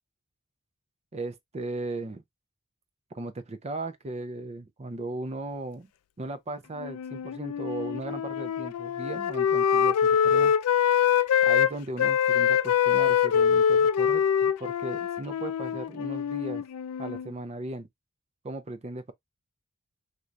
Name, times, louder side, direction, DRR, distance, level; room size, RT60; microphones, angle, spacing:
voice 1, 1.1-2.2 3.1-5.9 6.2-10.5 11.4-16.6 17.0-17.9 18.4-19.1, right 2 dB, 30° right, 0.6 m, -37 dB
Wind instrument woodwind instrument, 6.8-11.7 12.0-17.3, left 8 dB, 80° left, 0.3 m, -24 dB
2.9 x 2.6 x 3.2 m
head